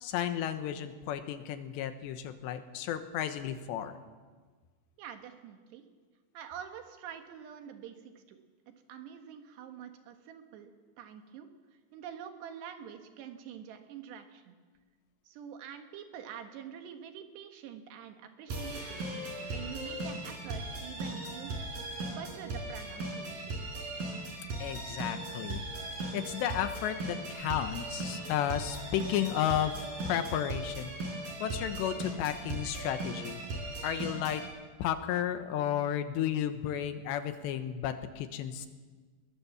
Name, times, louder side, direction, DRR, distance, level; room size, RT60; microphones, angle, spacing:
voice 1, 0.0-4.0 24.6-25.6 26.1-30.9 31.4-33.4 33.8-34.4 34.8-38.7, left 10 dB, 90° left, 9 dB, 3.4 m, -33 dB
voice 2, 5.0-5.9 6.3-11.5 11.9-14.6 15.3-19.1 19.5-21.6 22.1-23.7, right 9 dB, 75° right, 6 dB, 3.7 m, -46 dB
sound 1, 18.5-34.5, right 2 dB, 55° right, 5.7 m, -38 dB
21.0 x 20.5 x 7.2 m, 1.4 s
omnidirectional pair, 4.9 m